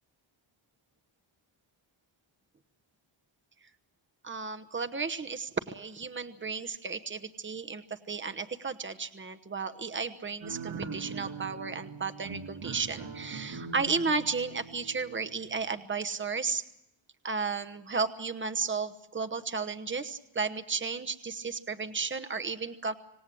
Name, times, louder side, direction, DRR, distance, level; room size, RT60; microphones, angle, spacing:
voice 1, 4.2-16.6 17.2-22.9, right 4 dB, 25° right, 9 dB, 1.1 m, -33 dB
sound 1, 10.4-15.7, right 4 dB, 55° right, 2.6 m, -42 dB
26.5 x 18.0 x 7.6 m, 0.82 s
wide cardioid pair, 125°, 49 cm